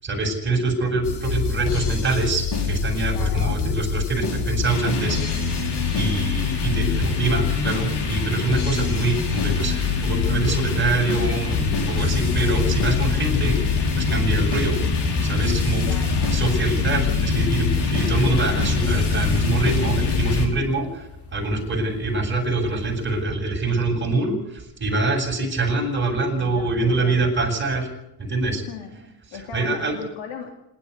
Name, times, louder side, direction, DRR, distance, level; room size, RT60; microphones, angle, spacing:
voice 1, 0.0-5.7 5.9-13.6 13.9-14.7 15.1-15.8 16.3-27.9 28.2-28.6 29.3-30.0, right 3 dB, 25° right, 0 dB, 7.7 m, -24 dB
sound 1, 1.0-20.5, left 5 dB, 55° left, 4.5 m, -23 dB
voice 2, 3.1-3.6 15.8-16.4 26.5-27.1 28.7-28.9 29.3-30.6, left 6 dB, 80° left, 3 dB, 3.1 m, -37 dB
sound 2, 5.6-23.2, left 4 dB, 30° left, 4.8 m, -45 dB
27.0 x 12.0 x 8.3 m, 0.85 s
cardioid pair, 125°, 47 cm